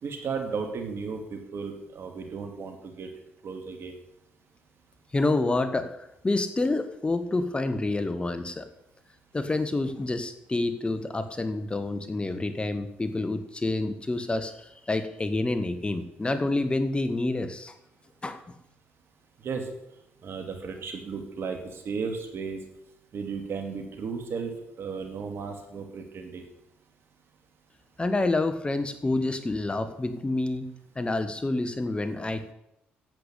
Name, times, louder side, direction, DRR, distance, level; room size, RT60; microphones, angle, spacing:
voice 1, 0.0-3.1 3.4-3.9 19.4-19.7 20.2-22.6 23.1-24.5 24.8-26.4, right 5 dB, 60° right, 5 dB, 2.7 m, -34 dB
voice 2, 5.1-8.7 9.3-17.7 18.2-18.5 28.0-32.5, left 2 dB, 20° left, 10 dB, 1.5 m, -28 dB
10.5 x 8.4 x 8.4 m, 0.82 s
supercardioid pair, 60°, 5 cm